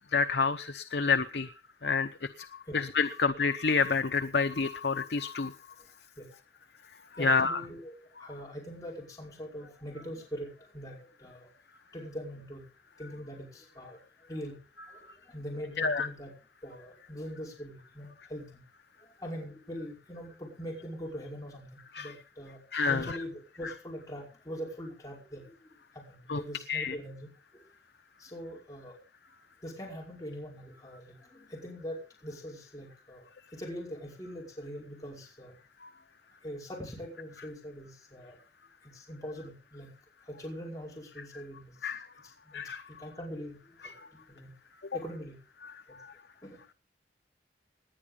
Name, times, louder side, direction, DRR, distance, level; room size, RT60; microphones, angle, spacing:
voice 1, 0.1-1.5 1.8-2.1 2.4-2.5 2.7-5.5 7.2-7.6 15.8-16.1 22.0-22.1 22.7-23.2 26.3-26.4 26.7-26.9 41.8-42.1 42.5-42.8, left 5 dB, 75° left, 10 dB, 0.8 m, -28 dB
voice 2, 7.2-11.5 11.9-12.6 13.0-14.6 14.9-16.3 16.6-18.6 19.0-22.6 22.9-25.5 25.9-27.6 28.2-29.0 29.6-33.3 33.5-35.5 36.4-38.4 38.8-39.9 40.2-41.9 42.2-44.5 44.9-45.4 45.9-46.0 46.4-46.6, equal, 20° left, -2 dB, 5.3 m, -42 dB
19.0 x 9.9 x 5.3 m, 0.34 s
head